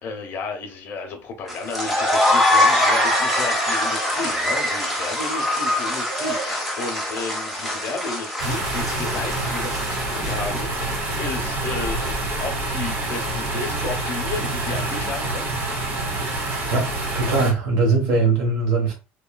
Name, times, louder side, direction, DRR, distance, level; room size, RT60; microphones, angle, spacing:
voice 1, 0.0-15.5, left 4 dB, 50° left, 0.8 m, -33 dB
sound 1, 1.5-10.8, left 1 dB, 5° right, 0.9 m, -23 dB
sound 2, 8.4-17.5, right 2 dB, 55° right, 1.1 m, -27 dB
voice 2, 17.1-18.9, right 3 dB, 80° right, 0.9 m, -20 dB
3.0 x 2.3 x 2.2 m
cardioid pair, 135°, 5 cm